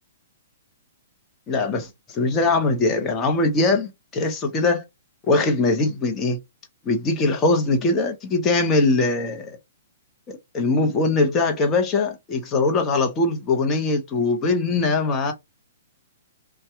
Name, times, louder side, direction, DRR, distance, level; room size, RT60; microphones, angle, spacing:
voice 1, 1.5-4.8 5.3-6.4 6.8-9.6 10.3-15.3, left 3 dB, 25° left, 0.8 m, -21 dB
2.7 x 2.3 x 3.4 m
figure-of-eight pair, 120°, 0 cm